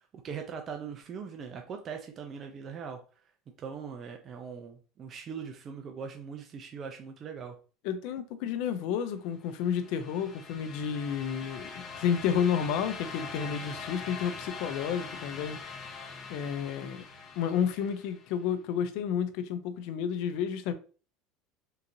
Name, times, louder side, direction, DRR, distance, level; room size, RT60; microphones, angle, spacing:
voice 1, 0.1-3.0 3.6-7.6, right 6 dB, 35° right, 0.5 m, -41 dB
voice 2, 7.8-15.6 16.3-17.0 17.4-20.7, left 8 dB, 65° left, 0.5 m, -31 dB
sound 1, 9.4-18.3, left 5 dB, 30° left, 0.8 m, -43 dB
3.7 x 2.9 x 2.6 m
supercardioid pair, 135°, 0 cm